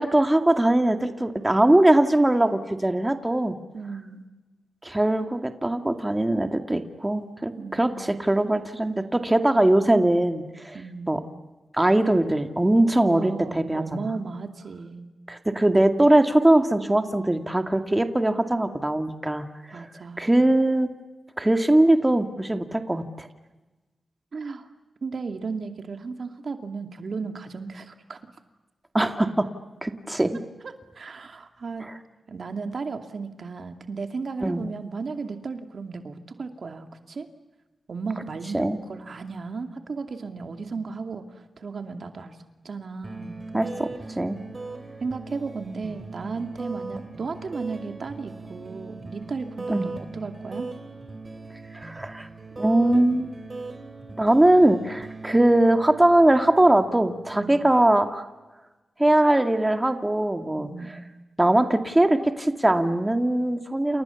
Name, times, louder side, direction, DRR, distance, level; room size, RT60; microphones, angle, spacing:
voice 1, 0.0-3.6 4.8-10.8 11.1-11.2 11.7-14.1 15.3-19.5 19.7-19.8 20.2-20.9 21.4-23.3 28.9-29.5 29.8-30.4 31.8-31.9 34.4-34.7 38.5-38.8 43.5-44.4 49.7-49.9 51.7-52.3 52.6-53.3 54.2-58.2 59.0-61.0 61.4-64.0, right 1 dB, 15° right, 6 dB, 2.2 m, -21 dB
voice 2, 3.7-4.2 7.6-8.2 10.7-11.2 13.1-15.1 19.7-20.3 24.3-24.7 25.0-28.2 30.6-31.8 32.3-37.3 37.9-42.4 42.6-43.7 45.0-50.7 57.4-57.6 60.6-61.0, right 4 dB, 65° right, 6 dB, 2.5 m, -35 dB
sound 1, 43.0-58.1, right 3 dB, 35° right, 4.5 m, -40 dB
29.5 x 28.5 x 7.2 m, 1.2 s
cardioid pair, 70°, 0 cm